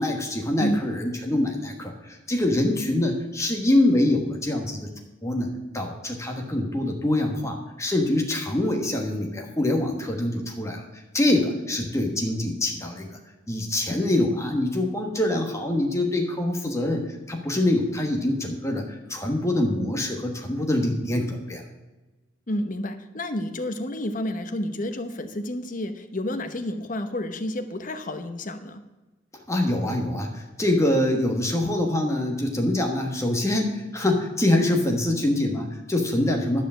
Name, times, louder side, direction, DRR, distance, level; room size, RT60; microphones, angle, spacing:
voice 1, 0.0-4.9 5.2-10.8 11.1-13.2 13.5-21.6 29.5-36.6, left 1 dB, 15° left, 2 dB, 1.3 m, -25 dB
voice 2, 22.5-28.8, left 1 dB, 40° left, 9 dB, 0.8 m, -30 dB
11.0 x 5.0 x 7.6 m, 1.1 s
head